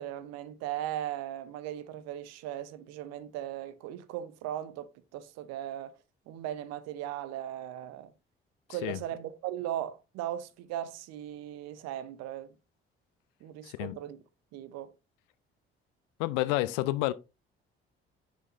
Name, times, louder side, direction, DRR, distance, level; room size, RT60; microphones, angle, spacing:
voice 1, 0.0-6.0 6.3-8.1 8.7-12.5 13.4-14.2 14.5-14.9, right 12 dB, 60° right, 0.8 m, -38 dB
voice 2, 13.6-13.9 16.2-17.1, left 18 dB, 65° left, 0.6 m, -29 dB
6.5 x 6.5 x 2.6 m
figure-of-eight pair, 45°, 29 cm